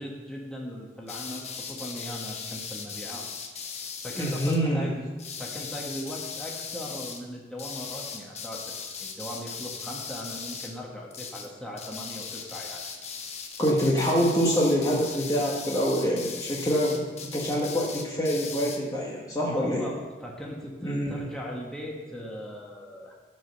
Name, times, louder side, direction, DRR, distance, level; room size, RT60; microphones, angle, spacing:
voice 1, 0.0-3.3 4.0-12.8 19.5-23.1, equal, 5° left, -3 dB, 1.6 m, -39 dB
sound 1, 1.1-4.6 5.2-7.2 7.6-10.8 11.1-11.5 11.8-18.8, left 6 dB, 40° left, 1.0 m, -38 dB
voice 2, 4.2-4.9 13.6-19.9 20.8-21.2, equal, 20° left, -4 dB, 1.4 m, -25 dB
15.5 x 5.3 x 6.6 m, 1.3 s
head